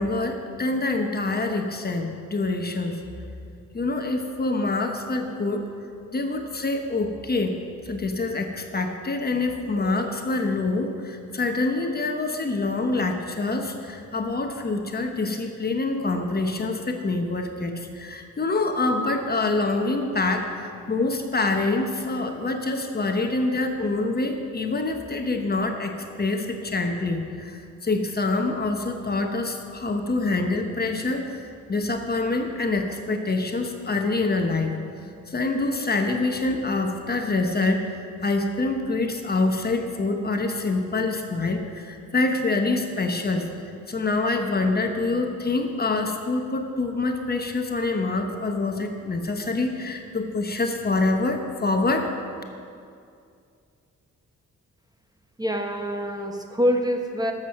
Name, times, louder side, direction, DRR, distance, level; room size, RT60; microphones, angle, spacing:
voice 1, 0.0-3.0 3.7-5.7 6.1-7.6 7.8-34.8 35.3-37.9 38.2-43.5 43.9-52.1, left 3 dB, 30° left, 4 dB, 1.1 m, -26 dB
voice 2, 55.4-57.3, equal, 10° right, 4 dB, 1.1 m, -25 dB
13.0 x 7.5 x 5.8 m, 2.4 s
cardioid pair, 85°, 32 cm